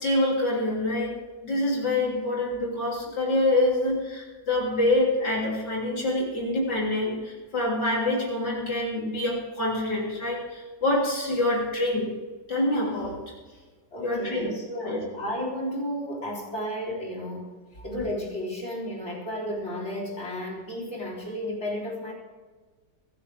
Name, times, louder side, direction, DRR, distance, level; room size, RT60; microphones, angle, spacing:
voice 1, 0.0-12.1 12.5-13.3 14.0-15.0, left 1 dB, 65° left, -3 dB, 3.9 m, -26 dB
voice 2, 13.9-17.5 17.8-22.1, left 1 dB, 35° left, -4 dB, 4.1 m, -33 dB
24.0 x 9.8 x 3.6 m, 1.4 s
omnidirectional pair, 2.0 m